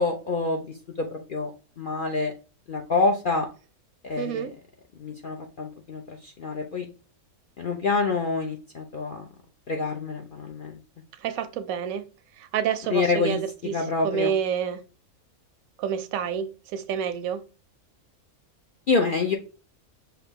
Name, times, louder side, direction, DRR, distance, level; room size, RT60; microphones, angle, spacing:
voice 1, 0.0-1.5 1.8-2.3 2.7-3.5 4.0-4.5 5.0-6.9 7.6-9.2 9.7-10.8 12.9-13.4 13.7-14.3 18.9-19.4, left 3 dB, 55° left, 0.6 m, -27 dB
voice 2, 4.2-4.5 11.2-12.1 12.4-14.8 15.8-17.4, right 8 dB, 75° right, 1.0 m, -29 dB
5.9 x 2.7 x 3.4 m
omnidirectional pair, 1.5 m